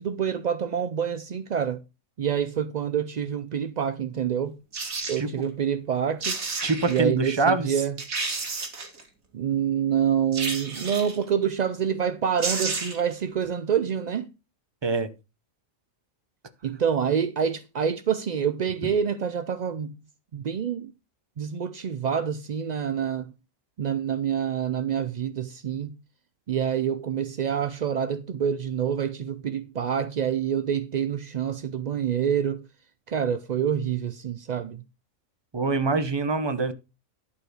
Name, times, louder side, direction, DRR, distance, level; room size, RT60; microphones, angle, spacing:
voice 1, 0.0-1.8 2.2-4.6 5.1-6.4 6.9-7.9 9.3-14.2 16.6-19.9 20.3-20.9 21.4-23.3 23.8-25.9 26.5-32.6 33.1-34.8, right 8 dB, 65° right, 0.4 m, -27 dB
sound 1, 4.7-5.2 5.9-6.0 6.2-7.0 7.6-7.7 8.0-9.0 10.3-11.2 12.1-12.2 12.4-13.1 13.4-13.5, right 3 dB, 80° right, 2.5 m, -31 dB
voice 2, 6.6-7.8 14.8-15.1 18.8-18.9 35.5-36.7, right 3 dB, 25° right, 0.7 m, -25 dB
11.5 x 4.6 x 6.5 m
omnidirectional pair, 1.4 m